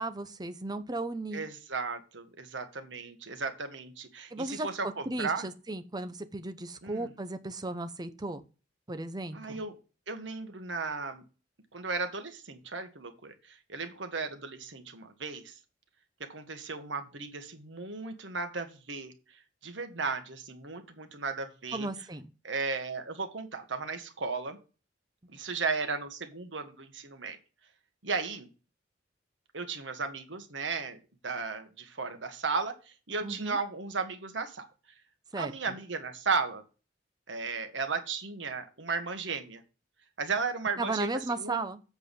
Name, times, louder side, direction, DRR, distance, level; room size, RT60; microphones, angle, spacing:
voice 1, 0.0-1.4 4.3-8.4 8.9-9.6 21.7-22.3 33.2-33.6 35.3-35.7 40.8-41.8, right 2 dB, 20° right, 10 dB, 0.8 m, -35 dB
voice 2, 1.3-5.5 6.8-7.1 9.3-9.7 10.1-11.2 11.7-13.3 13.7-15.5 16.2-19.1 19.6-21.9 22.4-24.6 25.3-27.4 28.0-28.5 29.5-31.0 31.2-32.7 33.1-34.7 35.4-36.6 37.3-39.6 40.2-41.1 41.4-41.6, right 4 dB, 90° right, 7 dB, 1.5 m, -35 dB
7.8 x 4.8 x 5.3 m, 0.33 s
head